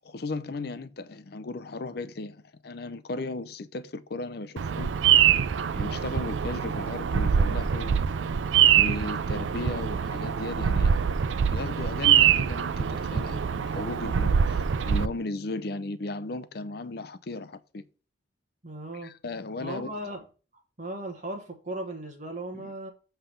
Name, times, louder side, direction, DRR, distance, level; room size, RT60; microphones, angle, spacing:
voice 1, 0.0-4.9 5.7-8.0 8.8-10.9 11.5-17.8 18.9-19.9 22.5-22.7, left 2 dB, 55° left, 0.6 m, -36 dB
Bird vocalization bird call bird song, 4.6-15.1, right 8 dB, 75° right, 0.4 m, -24 dB
voice 2, 18.6-19.1 19.6-20.2 20.8-22.9, right 1 dB, 40° right, 1.3 m, -37 dB
7.7 x 3.4 x 5.5 m
head